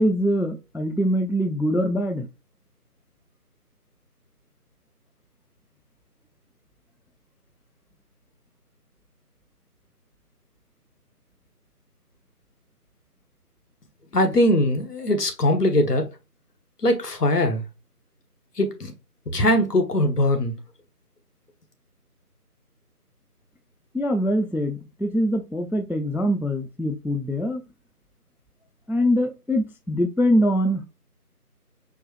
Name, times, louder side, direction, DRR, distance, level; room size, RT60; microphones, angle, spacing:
voice 1, 0.0-2.3 23.9-27.6 28.9-30.9, equal, 5° right, 0.3 m, -23 dB
voice 2, 14.1-16.1 16.8-17.6 18.6-18.9 19.3-20.5, left 1 dB, 80° left, 1.2 m, -21 dB
4.5 x 2.7 x 3.0 m
figure-of-eight pair, 175°, 47 cm